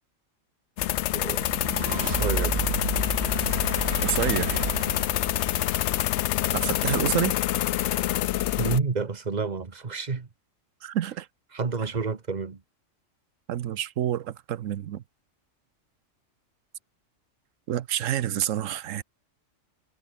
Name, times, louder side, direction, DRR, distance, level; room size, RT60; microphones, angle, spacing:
sound 1, 0.8-8.8, left 14 dB, 70° left, 0.8 m, -26 dB
voice 1, 1.1-1.6 2.0-2.7 8.6-10.3 11.5-12.6, right 4 dB, 35° right, 1.4 m, -30 dB
sound 2, 1.4-6.7, right 4 dB, 55° right, 2.3 m, -32 dB
voice 2, 4.0-4.6 6.5-7.3 10.8-11.3 13.5-15.0 17.7-19.0, right 11 dB, 75° right, 1.1 m, -28 dB
omnidirectional pair, 1.4 m